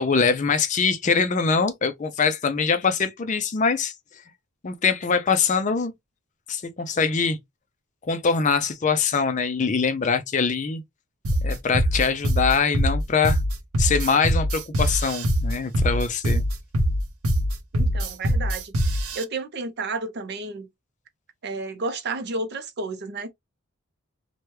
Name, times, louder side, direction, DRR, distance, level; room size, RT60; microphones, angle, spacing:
voice 1, 0.0-3.9 4.6-5.9 6.5-7.4 8.1-10.8 11.4-13.4 13.8-16.4, left 5 dB, 35° left, 0.4 m, -23 dB
sound 1, 11.2-19.2, equal, 85° right, 0.7 m, -23 dB
voice 2, 17.7-20.7 21.4-23.3, right 3 dB, 50° right, 0.5 m, -32 dB
3.0 x 2.2 x 3.0 m
head